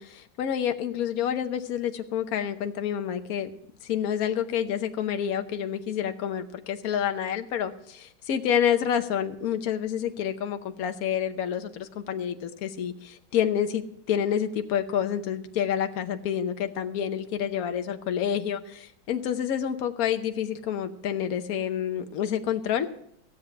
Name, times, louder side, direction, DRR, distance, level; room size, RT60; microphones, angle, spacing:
voice 1, 0.0-3.5 3.8-22.9, left 9 dB, 60° left, 7 dB, 1.2 m, -28 dB
15.5 x 8.1 x 5.9 m, 0.72 s
omnidirectional pair, 2.0 m